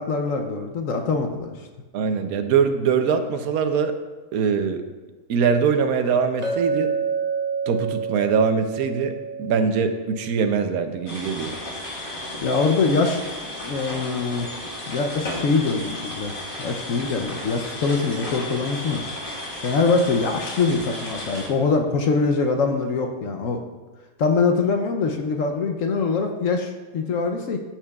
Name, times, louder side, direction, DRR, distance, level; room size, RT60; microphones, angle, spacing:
voice 1, 0.0-1.5 12.4-14.5 14.9-19.0 19.6-23.6 24.2-27.6, left 4 dB, 70° left, 4 dB, 1.0 m, -23 dB
voice 2, 1.9-3.9 4.3-4.8 5.3-6.9 7.7-11.5, right 6 dB, 80° right, 7 dB, 1.1 m, -22 dB
Chink clink, 6.4-10.6, right 5 dB, 55° right, 1.8 m, -28 dB
sound 1, 11.1-21.5, left 1 dB, 35° left, 1.8 m, -34 dB
14.0 x 5.9 x 2.3 m, 1.2 s
omnidirectional pair, 1.5 m